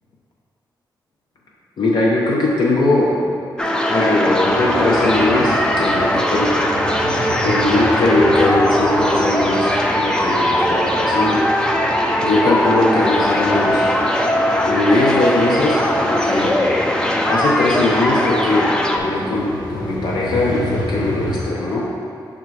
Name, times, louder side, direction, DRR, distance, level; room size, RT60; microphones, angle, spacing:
voice 1, 1.8-3.2 3.9-7.1 7.4-11.5 12.2-14.1 14.7-16.6 17.2-21.9, left 2 dB, 65° left, -5 dB, 0.7 m, -20 dB
sound 1, 3.6-19.0, left 1 dB, 10° left, 0.4 m, -19 dB
sound 2, 4.4-21.4, left 1 dB, 90° left, 1.2 m, -32 dB
5.6 x 3.7 x 4.7 m, 2.6 s
wide cardioid pair, 135°, 8 cm